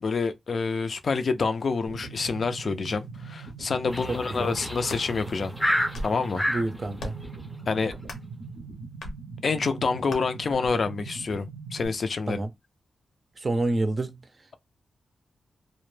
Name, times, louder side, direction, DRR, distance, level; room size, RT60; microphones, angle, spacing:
voice 1, 0.0-5.5 6.0-6.4 7.7-7.9 9.4-12.4, left 4 dB, 55° left, 0.4 m, -27 dB
sound 1, 1.9-11.9, right 4 dB, 90° right, 0.6 m, -41 dB
sound 2, 3.9-6.7, equal, 5° left, 0.6 m, -29 dB
sound 3, 4.8-5.1 5.7-6.2 7.0-7.3 8.0-8.3 9.0-9.2 10.1-10.2, left 2 dB, 85° left, 0.7 m, -37 dB
voice 2, 6.4-7.1 12.3-12.5 13.4-14.2, right 2 dB, 40° right, 0.5 m, -28 dB
2.1 x 2.0 x 3.1 m
cardioid pair, 85°, 0 cm